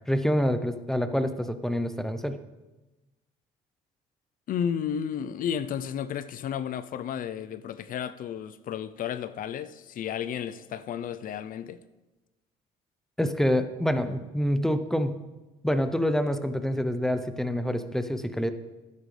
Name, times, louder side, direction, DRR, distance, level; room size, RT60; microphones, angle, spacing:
voice 1, 0.1-2.4 13.2-15.2 15.6-18.5, equal, 5° left, 0.7 m, -27 dB
voice 2, 4.5-11.8, left 8 dB, 55° left, 0.5 m, -32 dB
12.5 x 10.0 x 3.3 m
cardioid pair, 110°, 17 cm